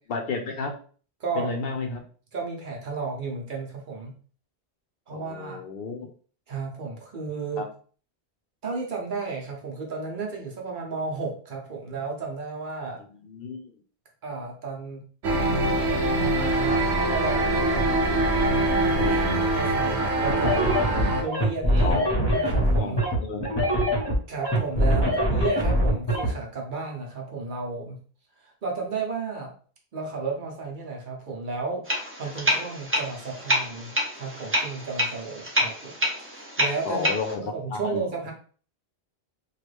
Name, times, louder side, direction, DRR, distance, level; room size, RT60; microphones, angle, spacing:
voice 1, 0.1-0.7 1.3-2.0 5.1-6.1 7.6-7.7 13.2-13.7 18.0-18.3 19.0-19.5 21.8-22.1 22.8-23.5 24.8-25.1 36.8-38.1, left 4 dB, 65° left, 5 dB, 0.7 m, -32 dB
voice 2, 2.3-4.2 5.1-5.6 6.5-7.6 8.6-13.0 14.2-15.0 15.9-18.0 19.1-19.2 19.5-20.6 21.2-22.0 22.2-23.0 24.3-28.0 28.4-29.5 29.9-35.9 36.3-37.1 37.4-38.3, right 4 dB, 55° right, -1 dB, 0.9 m, -33 dB
sound 1, 15.2-21.2, right 2 dB, 85° right, 0.9 m, -23 dB
sound 2, 20.3-26.3, equal, 25° left, 0.9 m, -23 dB
sound 3, 31.9-37.3, equal, 15° right, 0.5 m, -28 dB
3.1 x 2.4 x 3.2 m, 0.42 s
omnidirectional pair, 1.1 m